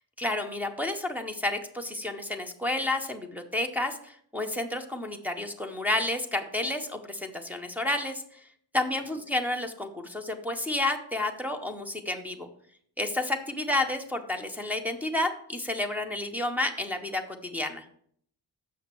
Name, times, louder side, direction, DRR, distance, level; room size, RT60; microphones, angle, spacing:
voice 1, 0.2-8.2 8.7-12.5 13.0-17.8, left 2 dB, 5° right, 2 dB, 0.6 m, -30 dB
7.7 x 6.1 x 4.4 m, 0.64 s
wide cardioid pair, 180°, 42 cm